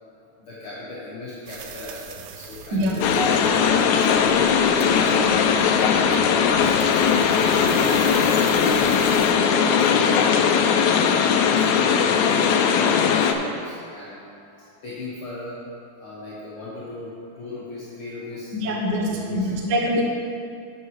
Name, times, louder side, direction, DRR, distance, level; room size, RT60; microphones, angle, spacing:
voice 1, 0.1-10.6 10.9-15.6 16.0-19.6, left 3 dB, 50° left, -9 dB, 2.1 m, -36 dB
sound 1, 1.5-9.3, right 7 dB, 75° right, 1.6 m, -40 dB
voice 2, 2.7-3.3 18.5-20.0, equal, 55° right, -1 dB, 1.2 m, -24 dB
sound 2, 3.0-13.3, left 7 dB, 80° left, 1.9 m, -19 dB
11.5 x 7.3 x 3.2 m, 2.4 s
omnidirectional pair, 3.4 m